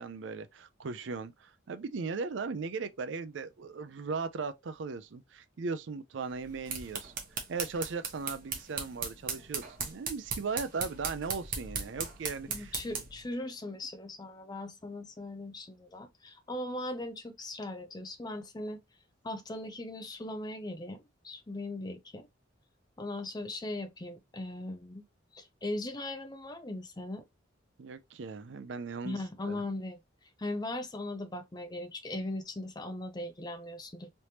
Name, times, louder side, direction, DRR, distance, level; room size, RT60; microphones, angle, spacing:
voice 1, 0.0-7.1 7.5-12.7 27.8-29.2 29.5-29.6, right 4 dB, 65° right, 0.4 m, -38 dB
sound 1, 6.4-13.2, right 5 dB, 45° right, 1.0 m, -38 dB
voice 2, 12.5-18.8 19.2-22.3 23.0-25.0 25.3-27.3 29.0-30.0 30.4-34.1, left 1 dB, 20° left, 0.5 m, -39 dB
3.3 x 3.0 x 2.7 m
head